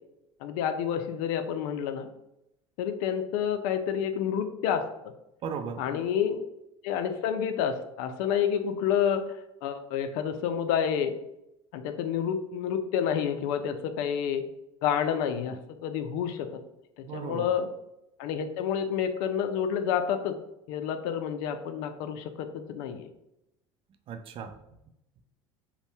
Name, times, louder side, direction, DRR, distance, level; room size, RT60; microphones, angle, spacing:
voice 1, 0.4-2.1 2.8-5.1 5.8-6.4 6.8-9.2 9.6-11.1 11.7-14.4 14.8-16.5 17.0-17.7 18.2-20.4 20.7-23.1, left 8 dB, 65° left, 8 dB, 0.4 m, -29 dB
voice 2, 5.4-6.0 17.1-17.5 24.1-24.6, right 6 dB, 40° right, 9 dB, 0.3 m, -36 dB
2.6 x 2.1 x 3.2 m, 0.85 s
hypercardioid pair, 75°, 14 cm